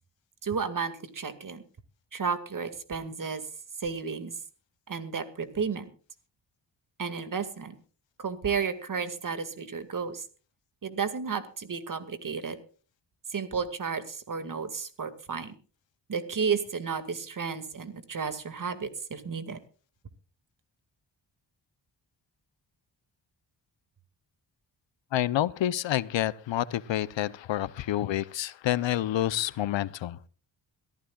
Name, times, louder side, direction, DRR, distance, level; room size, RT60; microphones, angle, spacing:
voice 1, 0.4-1.6 2.1-3.4 3.8-4.3 4.9-5.9 7.0-7.7 8.2-10.2 10.8-12.6 13.3-15.5 16.1-19.6, right 5 dB, 45° right, 2.2 m, -32 dB
voice 2, 25.1-30.2, left 13 dB, 80° left, 0.8 m, -28 dB
23.0 x 14.5 x 2.4 m
cardioid pair, 90°, 44 cm